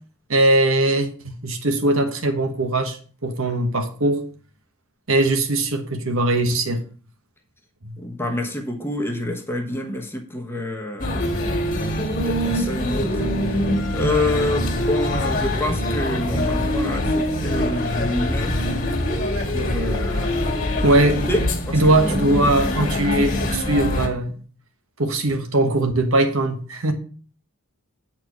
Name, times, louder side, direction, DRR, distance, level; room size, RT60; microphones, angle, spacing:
voice 1, 0.3-3.0 3.2-4.2 5.1-6.8 20.8-21.2 21.7-24.4 25.0-26.9, right 2 dB, 65° right, 6 dB, 1.3 m, -20 dB
voice 2, 8.0-11.2 12.1-13.6 13.9-18.6 19.5-20.6 21.3-22.9, left 1 dB, 10° left, 2 dB, 1.2 m, -27 dB
sound 1, 11.0-24.1, left 1 dB, 35° left, 1.9 m, -24 dB
8.7 x 4.5 x 6.1 m, 0.41 s
head